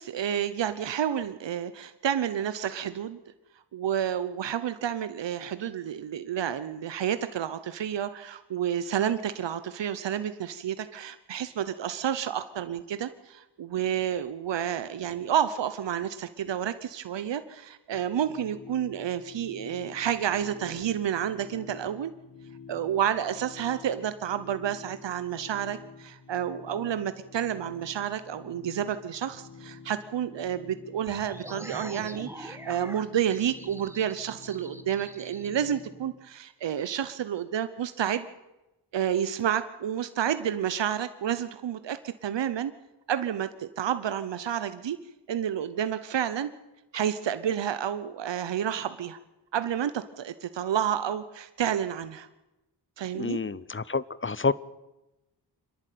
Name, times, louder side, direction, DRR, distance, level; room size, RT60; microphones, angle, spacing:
voice 1, 0.0-3.2 3.7-22.1 22.7-38.3 38.9-42.7 43.1-45.0 45.3-46.5 46.9-49.2 49.5-52.3 53.0-53.4, right 9 dB, 85° right, 12 dB, 0.9 m, -30 dB
sound 1, 17.9-36.1, left 5 dB, 55° left, 4.9 m, -49 dB
sound 2, 31.1-35.5, right 1 dB, 5° right, 1.8 m, -44 dB
voice 2, 53.1-54.5, left 4 dB, 30° left, 19 dB, 0.8 m, -28 dB
25.5 x 11.0 x 9.2 m, 1.0 s
cardioid pair, 50°, 42 cm